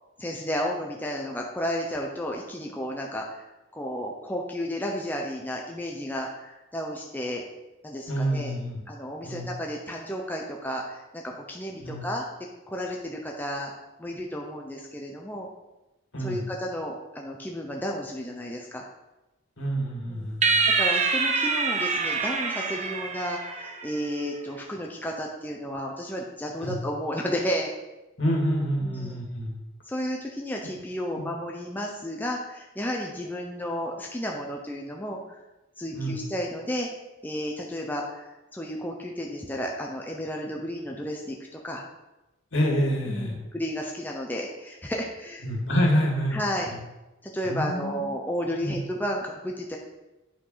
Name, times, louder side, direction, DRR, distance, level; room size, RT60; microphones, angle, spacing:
voice 1, 0.2-3.4 3.7-7.4 7.8-8.5 8.9-12.2 12.7-13.7 14.0-15.5 16.2-18.8 20.1-20.3 20.8-27.7 28.8-29.2 29.9-35.4 35.8-36.9 37.2-41.9 43.1-45.5 46.3-46.7 47.2-49.8, equal, 10° left, 0 dB, 0.8 m, -32 dB
voice 2, 8.1-8.8 9.2-9.4 11.8-12.0 16.1-16.4 19.6-20.7 26.6-26.8 28.2-29.6 31.2-31.3 35.9-36.2 42.5-43.4 45.4-46.4 46.7-46.8 47.4-48.1 48.6-48.7, equal, 65° left, -1 dB, 2.3 m, -27 dB
sound 1, 20.4-24.0, right 4 dB, 35° right, 0.8 m, -25 dB
8.7 x 5.3 x 5.6 m, 1.0 s
head